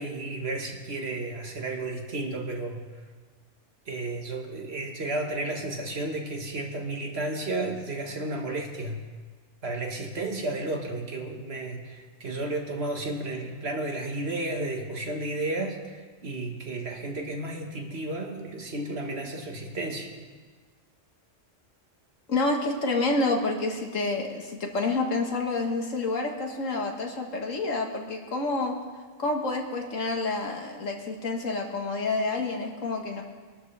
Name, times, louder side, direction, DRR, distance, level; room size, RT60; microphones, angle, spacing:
voice 1, 0.0-2.8 3.9-9.0 9.6-20.1, right 2 dB, 55° right, 2 dB, 1.8 m, -32 dB
voice 2, 22.3-28.8 29.2-33.2, left 3 dB, 90° left, 2 dB, 2.0 m, -28 dB
22.5 x 12.5 x 3.4 m, 1.4 s
omnidirectional pair, 1.3 m